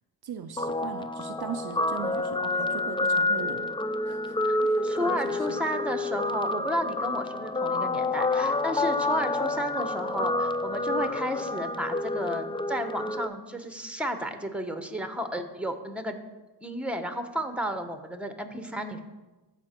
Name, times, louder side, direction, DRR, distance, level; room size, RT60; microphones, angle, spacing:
voice 1, 0.2-3.7 4.0-5.6, right 7 dB, 60° right, 8 dB, 0.6 m, -39 dB
Guitar, 0.6-13.3, left 2 dB, 10° left, 0.4 m, -28 dB
voice 2, 4.8-16.2 16.6-19.0, equal, 5° right, 8 dB, 1.1 m, -32 dB
14.0 x 4.9 x 4.5 m, 1.1 s
cardioid pair, 55°, 42 cm